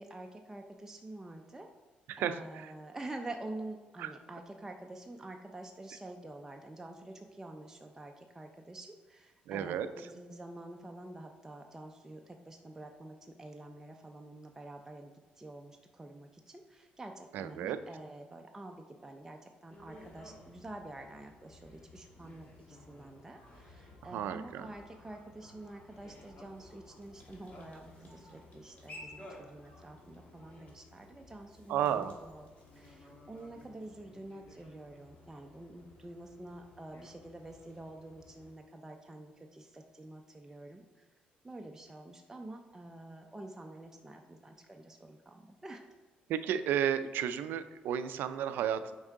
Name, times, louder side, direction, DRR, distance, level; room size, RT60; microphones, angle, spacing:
voice 1, 0.0-1.7 2.2-32.5 32.7-41.1 41.4-45.8, right 2 dB, 15° right, 3 dB, 0.5 m, -48 dB
voice 2, 2.1-2.7 4.0-4.1 9.5-10.1 17.3-17.8 24.0-24.7 31.7-32.2 46.3-49.0, right 9 dB, 80° right, 12 dB, 0.4 m, -33 dB
sound 1, 19.7-38.5, left 1 dB, 45° left, 1.6 m, -56 dB
sound 2, 23.3-30.6, left 1 dB, 75° left, 1.4 m, -63 dB
6.2 x 4.6 x 3.7 m, 1.3 s
cardioid pair, 80°, 3 cm